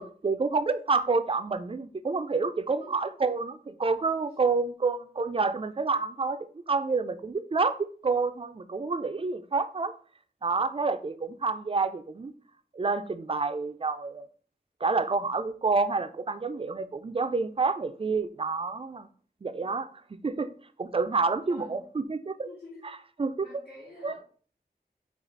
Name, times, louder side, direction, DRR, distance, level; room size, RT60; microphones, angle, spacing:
voice 1, 0.0-7.8 8.0-9.9 10.4-12.3 12.7-14.3 14.8-19.1 19.4-19.9 20.2-20.5 20.8-22.5 23.2-23.5 24.0-24.1, right 4 dB, 35° right, 11 dB, 0.4 m, -28 dB
voice 2, 2.8-3.3 19.5-19.8 21.4-21.9 22.4-22.9 23.4-24.2, left 2 dB, 65° left, -9 dB, 2.0 m, -49 dB
3.9 x 2.4 x 4.4 m, 0.43 s
wide cardioid pair, 65°, 17 cm